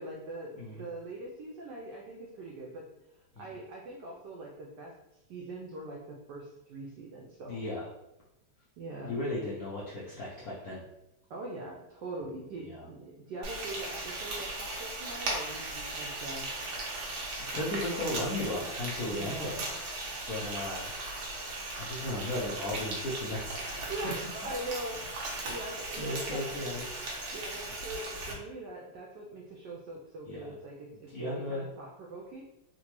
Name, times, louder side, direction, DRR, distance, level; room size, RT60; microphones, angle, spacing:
voice 1, 0.0-7.6 8.8-9.1 11.3-16.5 17.9-18.1 19.0-19.7 23.9-26.4 27.3-32.4, right 2 dB, 90° right, -2 dB, 0.9 m, -42 dB
voice 2, 7.5-7.8 9.0-10.9 12.7-12.9 17.5-19.5 20.3-20.9 21.8-23.7 25.4-25.5 26.0-26.8 30.3-30.5 31.1-31.7, left 1 dB, 75° left, -8 dB, 0.8 m, -35 dB
Frying (food), 13.4-28.3, right 2 dB, 70° right, 1.5 m, -37 dB
4.0 x 2.2 x 2.9 m, 0.89 s
omnidirectional pair, 2.4 m